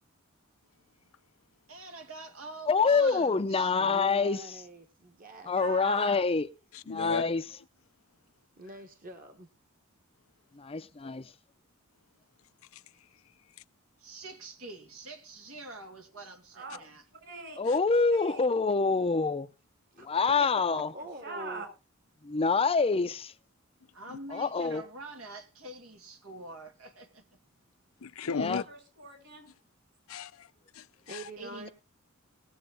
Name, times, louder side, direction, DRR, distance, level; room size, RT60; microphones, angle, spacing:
voice 1, 1.7-3.7 14.0-17.0 23.9-27.2 31.4-31.7, right 2 dB, 90° right, 2.5 m, -45 dB
voice 2, 2.7-4.4 5.5-6.5 6.9-7.4 10.5-11.3 17.6-19.5 20.0-20.9 22.2-23.3 24.3-24.8 28.4-28.6, left 4 dB, 25° left, 0.5 m, -26 dB
voice 3, 3.8-5.6 8.6-9.5 20.0-20.3 20.7-21.6 31.1-31.7, right 1 dB, 45° right, 1.5 m, -45 dB
voice 4, 5.5-6.2 16.5-16.8 17.2-17.6 18.1-18.5 21.2-21.7 28.4-29.5, right 3 dB, 60° right, 7.0 m, -41 dB
voice 5, 6.7-7.3 12.7-12.8 28.0-28.6 30.1-31.3, left 5 dB, 85° left, 0.6 m, -36 dB
20.0 x 7.8 x 3.8 m
head